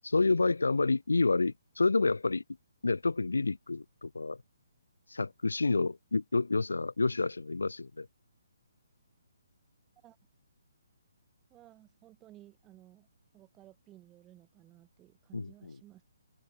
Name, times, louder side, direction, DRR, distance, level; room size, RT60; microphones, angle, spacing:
voice 1, 0.0-2.4 2.8-4.4 5.1-8.1 15.3-15.5, left 3 dB, 70° left, 0.6 m, -29 dB
voice 2, 11.5-13.1 13.3-16.0, right 15 dB, 15° right, 7.0 m, -57 dB
figure-of-eight pair, 135°, 0 cm